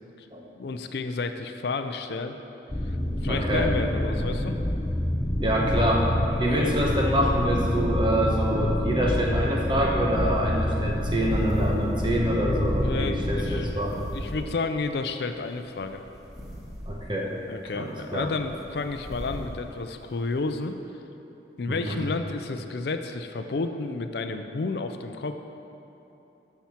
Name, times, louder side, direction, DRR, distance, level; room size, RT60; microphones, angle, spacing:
voice 1, 0.6-2.4 2.9-3.0 3.2-4.6 6.3-6.7 12.8-13.8 14.1-16.0 17.5-20.8 21.6-25.3, left 3 dB, 60° left, 7 dB, 0.4 m, -31 dB
sound 1, 2.7-13.7, left 1 dB, 20° left, 0.6 m, -27 dB
voice 2, 3.3-3.7 5.4-6.1 6.4-13.9 16.9-17.3 17.7-18.3 21.7-21.9, equal, 25° right, -2 dB, 1.1 m, -26 dB
sound 2, 10.1-20.6, equal, ahead, 1.8 m, -42 dB
13.0 x 5.8 x 4.4 m, 3.0 s
head